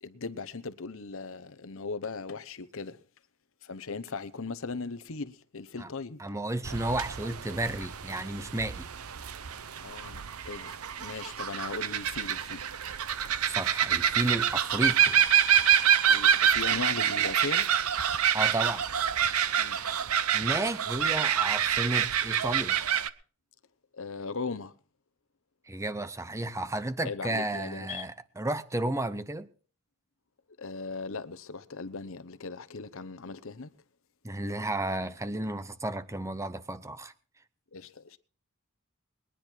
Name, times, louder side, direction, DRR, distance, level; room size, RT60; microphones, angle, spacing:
voice 1, 0.0-3.0 3.6-6.2 9.8-12.7 13.3-13.4 16.1-17.7 19.6-19.8 23.9-24.7 27.0-28.0 30.6-33.7 37.7-38.2, left 4 dB, 60° left, 0.9 m, -38 dB
voice 2, 6.2-8.9 13.4-15.2 18.3-18.8 20.3-22.8 25.7-29.5 34.2-37.1, right 2 dB, 15° right, 0.8 m, -32 dB
sound 1, 6.6-23.1, right 9 dB, 75° right, 0.8 m, -27 dB
21.0 x 10.0 x 4.5 m
head